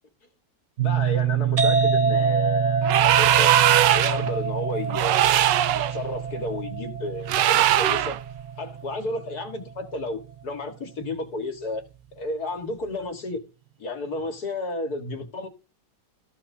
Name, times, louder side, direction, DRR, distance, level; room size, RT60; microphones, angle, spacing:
voice 1, 0.8-3.5 3.9-5.3 5.7-8.2 8.6-13.4 13.8-15.5, left 2 dB, 65° left, 2.2 m, -32 dB
sound 1, 0.8-10.7, right 14 dB, 55° right, 0.8 m, -29 dB
sound 2, 1.6-9.0, right 2 dB, 25° right, 0.9 m, -28 dB
sound 3, 2.8-4.3 4.9-5.9 7.3-8.2, right 12 dB, 85° right, 1.3 m, -20 dB
14.5 x 5.8 x 2.7 m
omnidirectional pair, 1.9 m